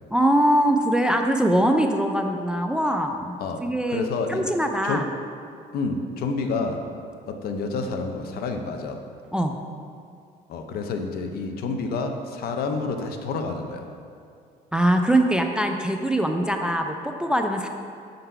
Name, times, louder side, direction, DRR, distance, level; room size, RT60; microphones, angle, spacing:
voice 1, 0.1-5.1 9.3-9.6 14.7-17.7, right 1 dB, 5° right, 4 dB, 0.3 m, -22 dB
voice 2, 3.4-4.4 4.8-5.0 5.7-6.8 7.3-9.0 10.5-13.8, left 4 dB, 65° left, 5 dB, 0.6 m, -29 dB
5.5 x 3.9 x 5.5 m, 2.4 s
cardioid pair, 110°, 17 cm